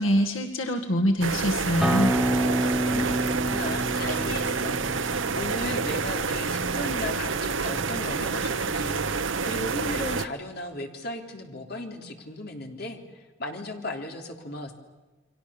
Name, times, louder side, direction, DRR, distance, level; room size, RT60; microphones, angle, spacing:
voice 1, 0.0-2.1, equal, 85° left, 4 dB, 2.2 m, -24 dB
sound 1, 1.2-10.3, right 5 dB, 75° right, 1.0 m, -28 dB
Acoustic guitar, 1.8-7.0, right 1 dB, ahead, 0.9 m, -29 dB
voice 2, 2.9-14.7, left 1 dB, 50° left, 3 dB, 3.4 m, -36 dB
29.5 x 24.0 x 7.2 m, 1.2 s
head